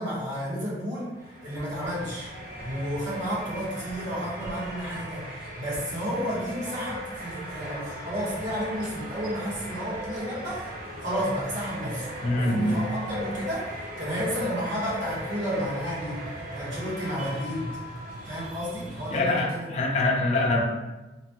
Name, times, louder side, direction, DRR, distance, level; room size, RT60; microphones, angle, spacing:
voice 1, 0.0-2.3 2.6-10.7 11.0-17.7 18.2-19.7, equal, 85° right, -8 dB, 1.2 m, -32 dB
sound 1, 1.1-19.6, right 1 dB, 55° right, 0.6 m, -38 dB
voice 2, 12.2-12.9 19.1-20.6, left 2 dB, 35° left, -1 dB, 0.4 m, -24 dB
2.9 x 2.2 x 2.9 m, 1.1 s
head